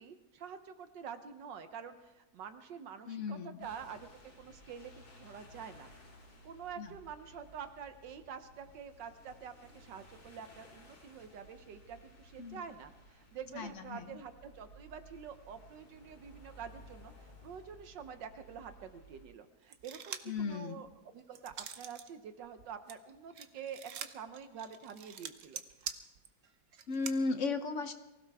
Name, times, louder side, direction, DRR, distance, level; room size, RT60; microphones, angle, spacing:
voice 1, 0.0-5.9 6.4-25.6, right 7 dB, 75° right, 9 dB, 1.5 m, -47 dB
voice 2, 3.1-3.7 6.8-6.9 12.4-12.6 13.5-14.1 20.3-20.8 26.9-27.9, left 4 dB, 50° left, 8 dB, 1.0 m, -36 dB
sound 1, 3.6-19.3, equal, 70° left, 4.3 m, -58 dB
sound 2, 19.7-20.4 20.9-22.1 22.4-27.2, right 8 dB, 55° right, 1.0 m, -45 dB
23.5 x 16.0 x 3.5 m, 1.0 s
omnidirectional pair, 2.0 m